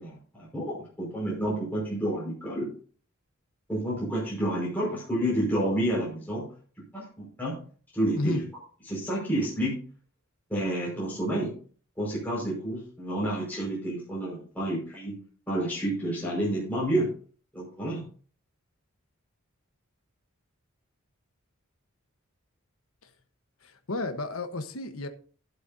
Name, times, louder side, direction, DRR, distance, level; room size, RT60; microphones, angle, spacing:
voice 1, 0.0-2.7 3.7-6.5 6.9-7.6 7.9-8.4 8.9-9.8 10.5-11.5 12.0-15.1 15.5-17.1 17.5-18.0, right 1 dB, 10° left, 5.4 m, -29 dB
voice 2, 23.6-25.1, left 2 dB, 80° left, 1.3 m, -32 dB
12.0 x 10.5 x 2.8 m
head